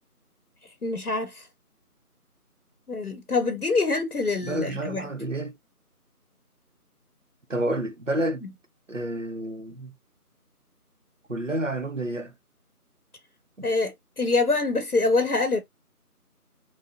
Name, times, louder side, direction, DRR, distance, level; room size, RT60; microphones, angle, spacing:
voice 1, 0.8-1.5 2.9-5.1 8.4-8.5 13.6-15.6, left 3 dB, 70° left, 0.8 m, -25 dB
voice 2, 4.4-5.6 7.5-8.4 8.9-9.9 11.3-12.3 13.6-13.7, right 1 dB, 55° right, 0.6 m, -29 dB
3.2 x 2.7 x 2.5 m
figure-of-eight pair, 175°, 46 cm